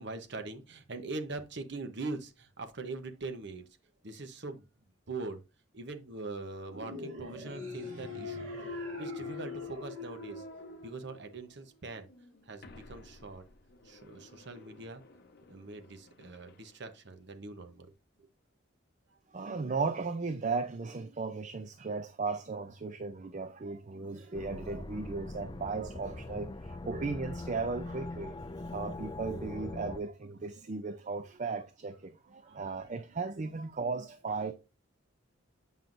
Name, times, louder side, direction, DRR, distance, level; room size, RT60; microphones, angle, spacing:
voice 1, 0.0-3.6 4.0-4.6 5.1-5.4 5.7-8.5 9.0-10.4 10.8-12.1 12.5-13.4 13.9-15.0 15.5-17.9 24.2-24.4 24.7-24.8 30.8-31.2 32.5-32.6, right 3 dB, 60° right, 0.9 m, -42 dB
sound 1, 6.7-11.2, equal, 90° right, 2.7 m, -46 dB
Thump thud, 7.4-11.5 11.9-16.6, left 4 dB, 55° left, 0.7 m, -45 dB
voice 2, 19.3-28.4 28.7-34.5, right 4 dB, 40° right, 0.4 m, -36 dB
sound 2, 24.3-30.0, left 2 dB, 25° left, 0.4 m, -42 dB
7.6 x 5.5 x 2.6 m
head